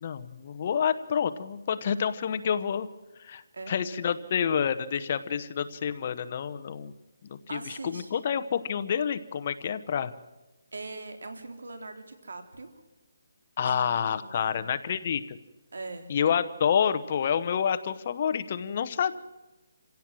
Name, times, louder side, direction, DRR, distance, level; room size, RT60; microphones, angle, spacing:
voice 1, 0.0-2.9 3.2-6.9 7.2-10.1 13.6-15.4 16.1-19.2, left 7 dB, 30° left, 11 dB, 0.9 m, -28 dB
voice 2, 7.5-8.1 10.7-12.8 13.6-14.6 15.7-16.1, right 3 dB, 85° right, 6 dB, 3.8 m, -41 dB
27.5 x 16.5 x 7.6 m, 1.1 s
hypercardioid pair, 175°, 0 cm